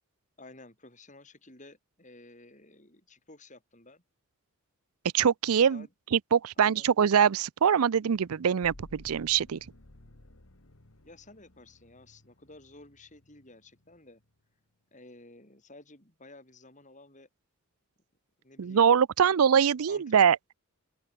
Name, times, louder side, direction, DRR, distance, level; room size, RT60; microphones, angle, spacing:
voice 1, 0.4-4.0 5.5-5.9 6.6-6.9 11.0-14.2 14.9-17.3 18.4-18.9 19.2-19.5 19.9-20.2, left 2 dB, 35° left, 7.5 m, -53 dB
voice 2, 5.1-5.9 6.1-9.6 18.6-20.4, right 7 dB, 75° right, 0.5 m, -23 dB
sound 1, 8.1-14.4, left 1 dB, 65° left, 2.2 m, -56 dB
open air
head